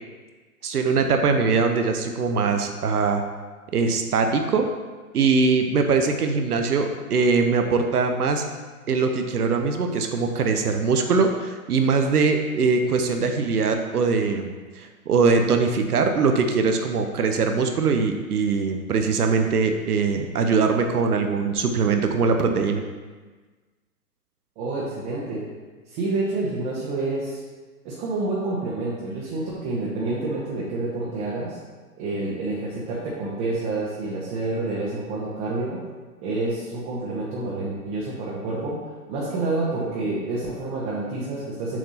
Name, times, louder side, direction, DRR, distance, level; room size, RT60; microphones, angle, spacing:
voice 1, 0.6-3.2 3.7-4.7 5.1-8.4 8.9-22.8, right 4 dB, 80° right, 5 dB, 0.9 m, -22 dB
voice 2, 24.6-25.5 25.9-27.4 27.8-31.6 32.0-35.8 36.2-38.8 39.1-41.8, right 2 dB, 30° right, -5 dB, 1.3 m, -28 dB
7.4 x 5.9 x 2.8 m, 1.3 s
hypercardioid pair, 125°, 45 cm